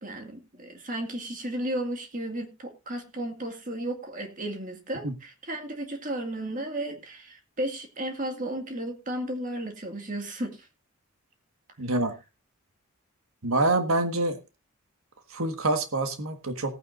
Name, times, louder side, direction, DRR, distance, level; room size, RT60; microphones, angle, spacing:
voice 1, 0.0-10.7, right 1 dB, 35° right, 4 dB, 2.1 m, -34 dB
voice 2, 11.8-12.1 13.4-14.4 15.3-16.7, right 2 dB, 70° right, 7 dB, 1.6 m, -26 dB
18.0 x 9.3 x 2.6 m, 0.26 s
head